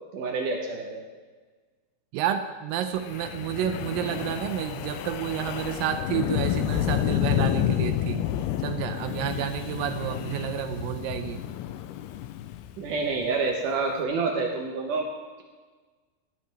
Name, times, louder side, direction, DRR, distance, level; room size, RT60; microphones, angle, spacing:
voice 1, 0.1-1.0 12.8-15.1, right 4 dB, 70° right, 2 dB, 2.1 m, -28 dB
voice 2, 2.1-8.2 8.6-11.4, right 10 dB, 85° right, 8 dB, 2.1 m, -30 dB
Wind, 3.0-13.3, left 12 dB, 80° left, 2.5 m, -30 dB
15.5 x 12.0 x 3.4 m, 1.4 s
omnidirectional pair, 4.7 m